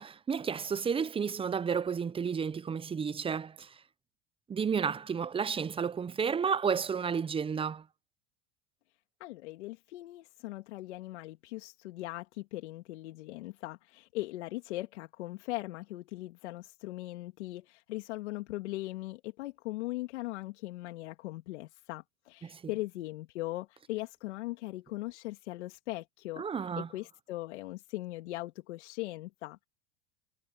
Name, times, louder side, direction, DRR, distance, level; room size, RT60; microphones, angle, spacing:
voice 1, 0.0-3.7 4.5-7.8 22.4-22.6 26.4-26.9, right 6 dB, 15° right, 0.6 m, -32 dB
voice 2, 9.2-26.4 26.8-29.7, left 18 dB, 75° left, 2.4 m, -39 dB
hypercardioid pair, 105°, 35 cm